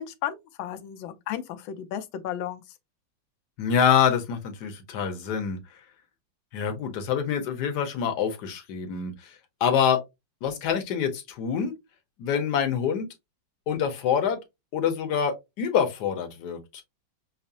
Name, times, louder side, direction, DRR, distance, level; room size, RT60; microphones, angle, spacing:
voice 1, 0.0-2.6, left 10 dB, 85° left, 1.4 m, -34 dB
voice 2, 3.6-5.6 6.5-9.3 9.6-10.0 10.4-11.7 12.2-13.1 13.7-14.4 14.7-16.8, left 7 dB, 65° left, 1.3 m, -26 dB
5.8 x 2.0 x 2.6 m
omnidirectional pair, 2.1 m